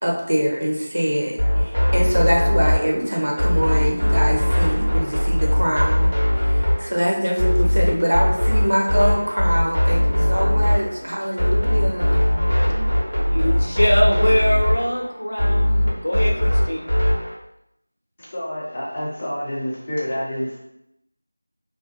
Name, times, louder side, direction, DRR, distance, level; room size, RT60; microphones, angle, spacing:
voice 1, 0.0-12.3, equal, 60° right, -1 dB, 0.6 m, -24 dB
sound 1, 1.4-17.3, left 1 dB, 90° left, 1.1 m, -20 dB
voice 2, 13.3-16.8, equal, 65° left, -2 dB, 0.6 m, -22 dB
voice 3, 18.2-20.6, equal, 20° left, -7 dB, 0.5 m, -28 dB
2.5 x 2.4 x 2.3 m, 0.79 s
figure-of-eight pair, 170°, 0 cm